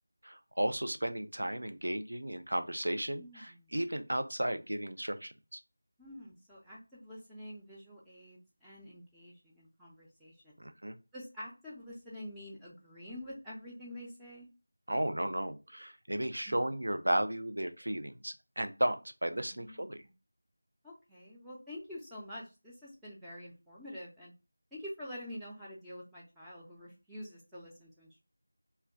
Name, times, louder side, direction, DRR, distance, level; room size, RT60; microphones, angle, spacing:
voice 1, 0.2-5.6 10.6-11.0 14.9-20.0, right 1 dB, 80° right, 8 dB, 0.4 m, -34 dB
voice 2, 3.1-3.7 6.0-10.6 11.1-14.5 16.5-16.7 19.5-20.1 20.8-24.3 24.7-28.2, equal, ahead, -10 dB, 0.4 m, -47 dB
2.2 x 2.2 x 3.5 m, 0.29 s
figure-of-eight pair, 170°, 0 cm